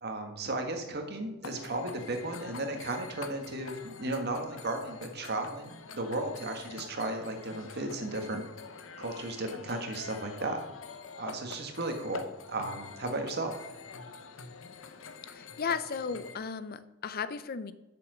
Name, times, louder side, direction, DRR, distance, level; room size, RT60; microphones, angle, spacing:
voice 1, 0.0-8.4 9.0-10.6 11.2-13.5, right 2 dB, 55° right, 5 dB, 1.6 m, -35 dB
sound 1, 1.4-16.4, left 4 dB, 85° left, 0.9 m, -46 dB
voice 2, 15.3-17.7, left 6 dB, 50° left, 14 dB, 0.5 m, -35 dB
7.8 x 7.0 x 6.1 m, 1.0 s
head